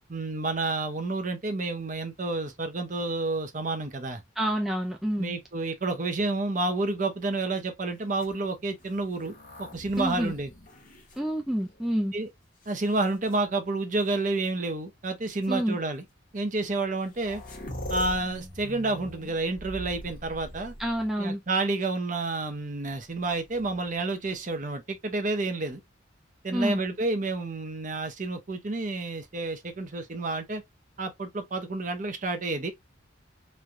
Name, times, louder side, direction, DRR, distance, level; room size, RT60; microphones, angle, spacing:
voice 1, 0.1-4.2 5.2-10.5 12.1-12.3 12.7-16.0 16.3-17.4 17.9-20.7 21.2-25.8 26.4-30.6 31.0-32.7, right 2 dB, 40° right, 0.7 m, -30 dB
voice 2, 4.4-5.3 10.0-10.3 11.2-12.1 15.5-15.8 20.8-21.4 26.5-26.8, equal, ahead, 0.4 m, -28 dB
sound 1, 8.1-11.9 12.6-13.4 14.5-14.6 15.3-15.5 16.6-16.7 16.9-21.4 23.3-24.0, equal, 45° left, 1.0 m, -42 dB
3.1 x 2.3 x 2.5 m
head